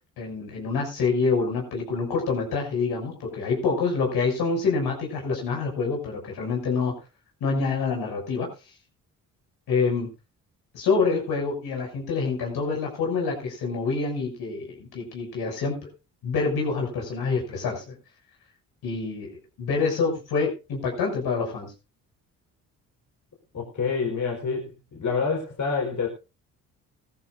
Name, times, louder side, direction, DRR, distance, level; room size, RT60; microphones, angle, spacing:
voice 1, 0.2-6.9 7.4-8.5 9.7-10.1 10.7-15.9 16.2-17.9 18.8-19.3 19.6-21.7, left 4 dB, 70° left, 1 dB, 6.5 m, -26 dB
voice 2, 23.5-26.1, left 5 dB, 50° left, 0 dB, 4.5 m, -27 dB
18.0 x 13.5 x 2.6 m, 0.30 s
hypercardioid pair, 55°, 39 cm